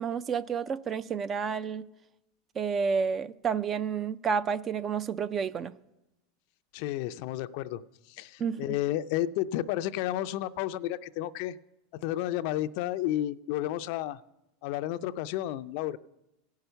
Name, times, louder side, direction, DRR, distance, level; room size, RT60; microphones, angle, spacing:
voice 1, 0.0-1.8 2.6-5.7 8.4-8.7, right 6 dB, 25° right, 0.4 m, -30 dB
voice 2, 6.7-7.8 8.1-11.6 11.9-14.2 14.6-16.0, left 13 dB, 60° left, 0.4 m, -32 dB
16.5 x 5.7 x 8.0 m
supercardioid pair, 135°, 0 cm